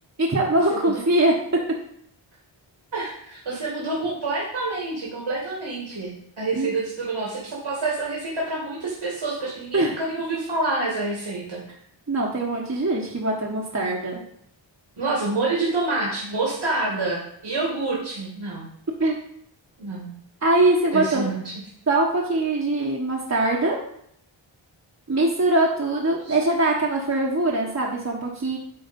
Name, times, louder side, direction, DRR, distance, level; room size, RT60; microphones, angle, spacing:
voice 1, 0.2-1.3 6.5-6.7 9.7-10.0 12.1-14.2 19.0-19.2 20.4-21.3 21.9-23.8 25.1-28.6, right 2 dB, 35° right, -3 dB, 1.3 m, -22 dB
voice 2, 0.7-1.0 2.9-11.6 15.0-18.7 19.8-20.1 20.9-21.4 26.2-26.4, right 3 dB, 70° right, -4 dB, 2.2 m, -27 dB
9.6 x 3.4 x 5.3 m, 0.69 s
wide cardioid pair, 60°, 47 cm